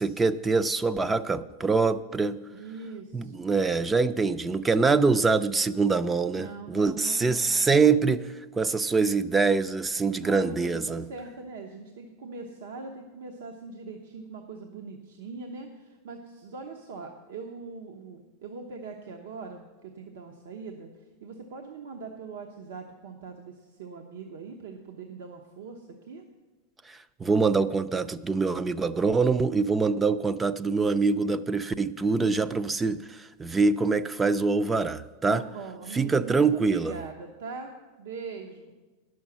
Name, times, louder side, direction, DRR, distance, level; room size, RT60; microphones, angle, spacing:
voice 1, 0.0-2.4 3.1-8.3 8.6-11.0 26.9-35.4 35.9-37.0, right 4 dB, 10° right, 14 dB, 0.3 m, -24 dB
voice 2, 2.5-3.5 6.3-7.9 10.2-26.2 35.3-38.7, right 4 dB, 80° right, 3 dB, 0.9 m, -41 dB
10.5 x 6.3 x 7.2 m, 1.2 s
supercardioid pair, 150°, 0 cm